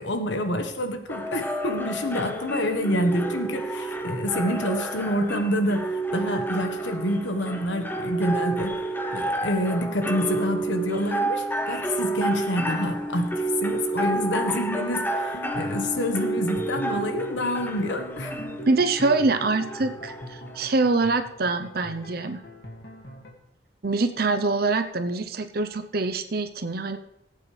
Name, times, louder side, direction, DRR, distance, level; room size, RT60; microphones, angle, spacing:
voice 1, 0.0-8.8 9.1-18.3, left 1 dB, 90° left, 6 dB, 1.4 m, -27 dB
sound 1, 1.1-20.7, right 2 dB, 10° left, 0.8 m, -30 dB
sound 2, 12.4-23.3, equal, 65° left, 2.1 m, -41 dB
voice 2, 18.7-22.4 23.8-27.0, right 3 dB, 55° right, 8 dB, 0.8 m, -24 dB
19.0 x 8.5 x 3.3 m, 0.81 s
head